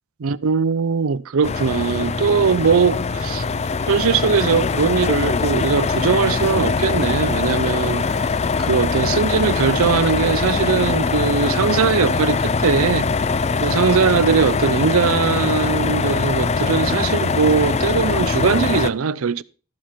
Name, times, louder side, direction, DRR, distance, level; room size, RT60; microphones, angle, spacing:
voice 1, 0.2-3.4 3.9-13.1 13.6-19.4, right 5 dB, 80° right, 0.5 m, -20 dB
sound 1, 1.4-18.9, left 4 dB, 30° left, 0.4 m, -22 dB
13.0 x 7.6 x 4.4 m
head